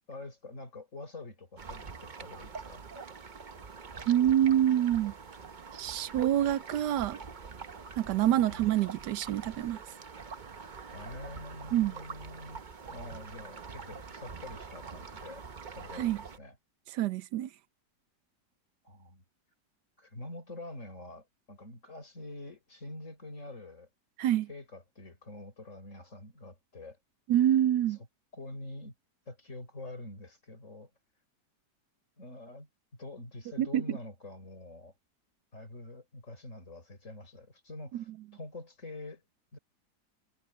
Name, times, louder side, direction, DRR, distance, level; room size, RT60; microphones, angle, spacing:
voice 1, 0.1-2.9 8.3-8.7 10.9-12.6 12.9-15.5 15.8-16.6 18.8-19.2 20.0-23.9 24.5-27.0 28.3-28.9 29.3-30.9 32.2-34.9 35.5-39.2 39.5-39.6, left 2 dB, 45° left, 5.4 m, -46 dB
sound 1, 1.6-16.4, right 5 dB, 35° right, 0.8 m, -45 dB
voice 2, 4.1-5.1 5.7-7.2 8.0-9.8 11.7-11.9 16.0-16.2 16.9-17.5 24.2-24.5 27.3-28.0 33.6-34.0 37.9-38.0, right 11 dB, 85° right, 1.3 m, -26 dB
omnidirectional pair, 1.8 m